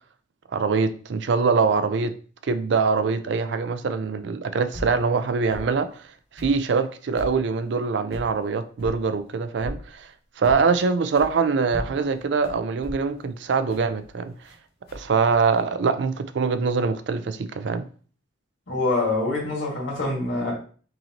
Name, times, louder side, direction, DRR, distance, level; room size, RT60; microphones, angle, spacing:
voice 1, 0.5-2.1 2.4-6.0 6.3-10.1 10.4-14.3 14.9-17.8, right 5 dB, 65° right, 0.4 m, -23 dB
sound 1, 4.7-5.0 5.5-5.7 6.4-6.6 7.1-7.4 8.1-8.3 8.8-9.0 9.6-9.9 10.4-10.8 11.1-11.4 11.7-14.6 14.9-15.6, equal, 50° left, 1.0 m, -37 dB
voice 2, 18.7-20.5, left 2 dB, 80° left, 1.9 m, -25 dB
5.4 x 2.8 x 2.9 m
head